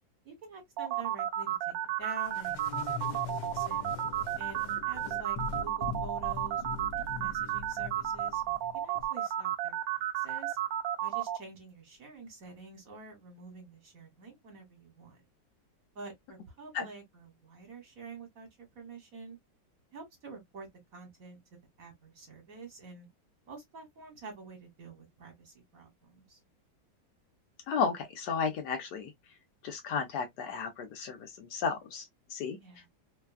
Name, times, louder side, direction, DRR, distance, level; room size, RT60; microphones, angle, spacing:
voice 1, 0.2-3.9 4.4-8.4 8.7-10.6 11.0-15.2 15.9-18.5 18.7-19.4 19.9-20.7 20.9-21.4 21.8-23.1 23.5-26.4 32.6-32.9, right 4 dB, 50° right, 1.5 m, -48 dB
sound 1, 0.8-11.4, right 12 dB, 70° right, 0.9 m, -32 dB
sound 2, 2.3-9.1, left 5 dB, 85° left, 1.4 m, -42 dB
voice 2, 27.7-29.1 29.6-32.6, left 6 dB, 70° left, 1.3 m, -33 dB
3.3 x 2.2 x 2.2 m
omnidirectional pair, 2.0 m